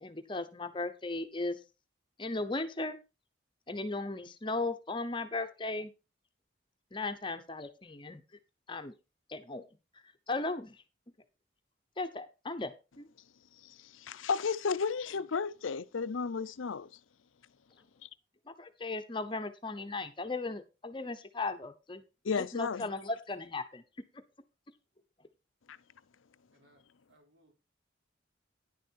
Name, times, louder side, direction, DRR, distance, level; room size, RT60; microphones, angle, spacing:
voice 1, 0.0-1.6 2.2-3.0 3.7-5.9 6.9-8.2 8.7-8.9 9.3-9.6 10.3-10.8 12.0-13.1 18.6-22.0 22.4-23.8, left 2 dB, 25° left, 0.8 m, -36 dB
voice 2, 13.6-16.9 18.0-18.1 22.2-22.9 25.7-25.8, left 5 dB, 85° left, 0.6 m, -33 dB
voice 3, 26.5-26.8 27.1-27.5, right 1 dB, 70° right, 3.7 m, -63 dB
10.0 x 6.6 x 4.5 m
head